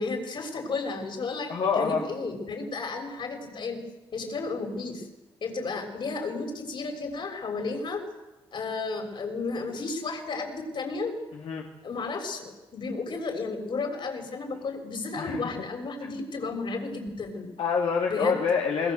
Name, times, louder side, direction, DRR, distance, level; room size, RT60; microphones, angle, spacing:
voice 1, 0.0-3.8 4.1-5.1 5.4-8.0 8.5-11.1 11.8-17.5 18.1-18.4, left 3 dB, 55° left, 4 dB, 6.9 m, -33 dB
voice 2, 1.5-2.0 11.3-11.7 15.1-15.6 17.6-18.9, left 5 dB, 75° left, -1 dB, 3.3 m, -27 dB
28.0 x 22.0 x 8.2 m, 1.1 s
cardioid pair, 95°, 10 cm